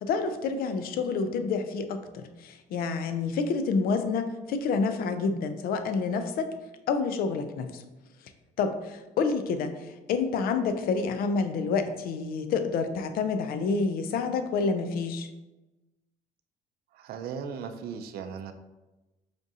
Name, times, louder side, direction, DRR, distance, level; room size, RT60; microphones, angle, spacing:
voice 1, 0.0-6.5 6.9-7.8 8.6-15.3, left 4 dB, 60° left, 9 dB, 0.4 m, -28 dB
voice 2, 16.9-18.5, right 6 dB, 65° right, 7 dB, 0.4 m, -37 dB
5.0 x 2.4 x 2.7 m, 1.1 s
cardioid pair, 110°, 17 cm